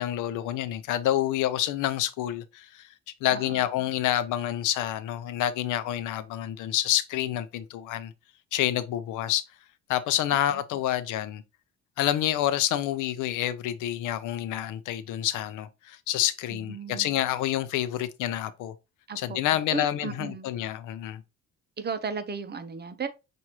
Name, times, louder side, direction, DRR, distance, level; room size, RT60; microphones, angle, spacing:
voice 1, 0.0-2.9 3.2-8.1 8.5-9.4 9.9-11.4 12.0-18.7 19.2-21.2, left 12 dB, 90° left, 0.6 m, -28 dB
voice 2, 3.3-3.7 10.5-10.6 16.5-17.1 19.1-19.4 19.7-20.5 21.8-23.1, right 5 dB, 35° right, 0.7 m, -35 dB
5.8 x 2.6 x 2.9 m
cardioid pair, 90°, 30 cm